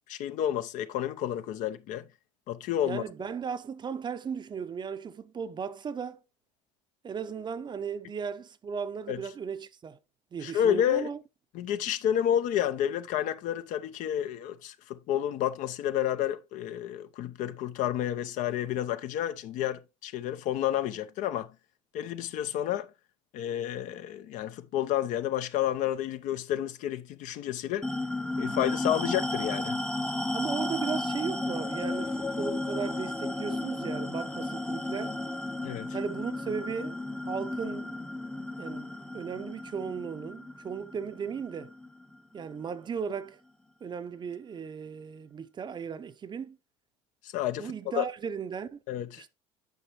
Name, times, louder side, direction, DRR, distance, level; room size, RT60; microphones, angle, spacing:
voice 1, 0.1-2.0 2.5-3.0 9.1-9.2 10.4-11.1 11.5-21.5 21.9-22.9 23.3-27.9 28.4-29.8 35.6-36.0 47.2-48.1 48.9-49.2, left 11 dB, 55° left, 0.6 m, -30 dB
voice 2, 2.9-6.2 7.0-10.0 10.3-11.2 30.3-35.2 35.9-37.0 37.3-37.9 38.6-41.7 42.3-43.4 43.8-46.6 47.6-48.8 49.2-49.3, right 6 dB, 30° right, 0.7 m, -36 dB
sound 1, 27.8-42.6, left 2 dB, 5° left, 0.7 m, -34 dB
9.2 x 5.7 x 3.0 m
hypercardioid pair, 75°, 16 cm